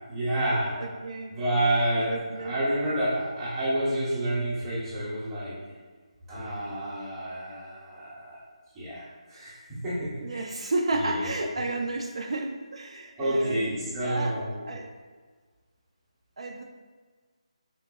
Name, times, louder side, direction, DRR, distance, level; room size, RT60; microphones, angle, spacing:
voice 1, 0.1-0.8 1.3-5.6 6.3-8.4 8.7-10.5 11.0-11.2 13.2-14.6, right 1 dB, 5° right, -10 dB, 0.8 m, -29 dB
voice 2, 0.7-1.4 2.0-2.5 10.2-14.9 16.4-16.6, right 2 dB, 60° right, 2 dB, 0.4 m, -32 dB
4.4 x 3.6 x 2.2 m, 1.5 s
figure-of-eight pair, 170°, 4 cm